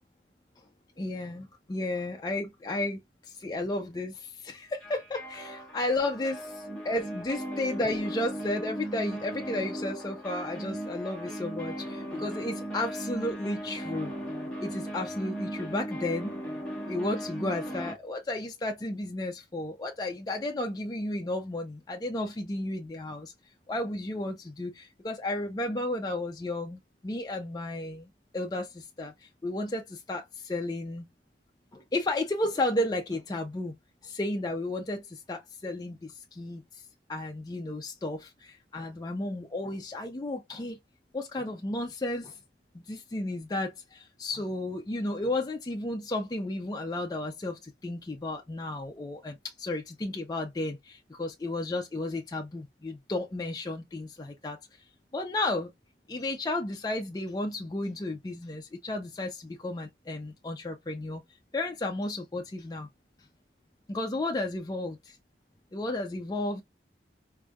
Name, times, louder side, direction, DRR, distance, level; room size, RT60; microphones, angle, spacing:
voice 1, 1.0-14.1 14.6-16.4 16.9-23.3 23.7-31.1 31.7-33.7 34.0-36.8 37.1-40.8 41.1-42.4 42.7-54.8 55.1-55.7 56.1-61.2 61.5-62.9 63.9-65.2 65.7-66.6, left 2 dB, 20° left, 0.4 m, -33 dB
sound 1, 4.8-17.9, equal, 5° left, 1.0 m, -37 dB
4.7 x 2.6 x 2.2 m
head